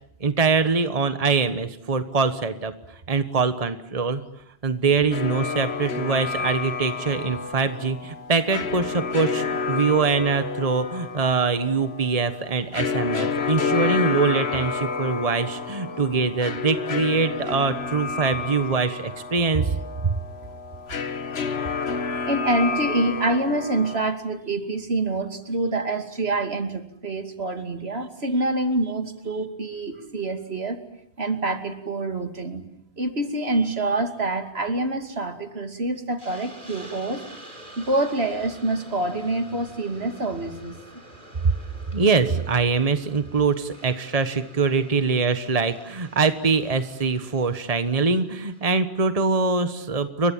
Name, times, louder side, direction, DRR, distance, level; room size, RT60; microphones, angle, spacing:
voice 1, 0.2-2.7 3.1-4.2 4.6-19.8 41.9-50.3, right 4 dB, 35° right, 10 dB, 1.4 m, -23 dB
sound 1, 5.1-24.0, left 5 dB, 80° left, 1.5 m, -30 dB
voice 2, 21.4-22.0 22.3-30.8 31.2-32.7 33.0-37.2 37.8-40.8, right 2 dB, 75° right, 7 dB, 2.9 m, -26 dB
Hiss, 36.2-48.7, right 1 dB, 50° right, 4.7 m, -48 dB
30.0 x 23.5 x 7.4 m, 0.75 s
omnidirectional pair, 1.1 m